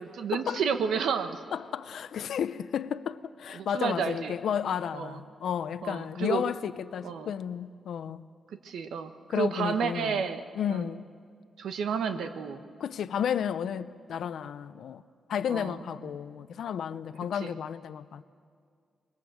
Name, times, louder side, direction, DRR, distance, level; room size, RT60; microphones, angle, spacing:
voice 1, 0.0-1.4 3.5-4.3 4.9-5.2 5.8-6.4 7.0-7.3 8.6-10.4 10.7-10.8 11.6-12.6 15.5-15.8 17.4-17.5, right 6 dB, 90° right, 1.3 m, -31 dB
voice 2, 1.5-8.3 9.3-10.3 10.6-11.1 12.8-15.0 15.3-18.2, left 8 dB, 75° left, 0.6 m, -32 dB
25.5 x 22.5 x 7.8 m
wide cardioid pair, 140°, 0 cm